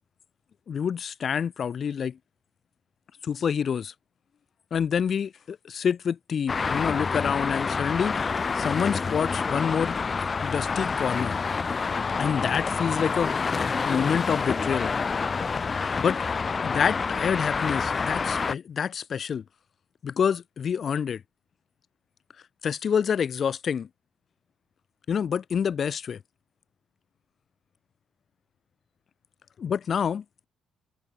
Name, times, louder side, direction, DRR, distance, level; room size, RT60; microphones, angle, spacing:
voice 1, 0.7-2.2 3.2-3.9 4.7-8.2 8.5-10.0 10.4-11.4 12.2-13.3 13.8-14.9 16.0-16.2 16.6-19.4 20.0-21.2 22.6-23.9 25.1-26.2 29.6-30.4, left 7 dB, 50° left, 3.3 m, -27 dB
Traffic noise roadway noise, 6.5-18.5, left 5 dB, 35° left, 1.9 m, -28 dB
cardioid pair, 90°, 0 cm